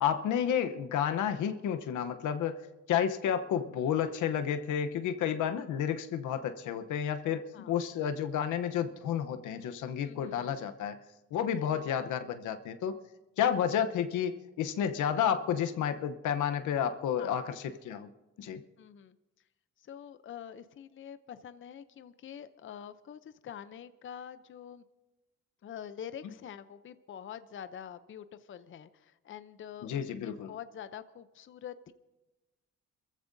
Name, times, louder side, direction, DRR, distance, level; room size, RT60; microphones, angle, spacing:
voice 1, 0.0-2.6 2.9-11.0 11.3-13.0 13.4-18.1 18.4-18.6 26.2-26.3 29.8-30.5, left 9 dB, 80° left, 9 dB, 0.9 m, -31 dB
voice 2, 10.0-10.5 11.6-11.8 17.2-17.4 18.8-19.2 19.8-24.8 25.6-31.9, left 9 dB, 40° left, 12 dB, 0.6 m, -46 dB
29.0 x 14.5 x 2.7 m, 1.1 s
cardioid pair, 90°, 30 cm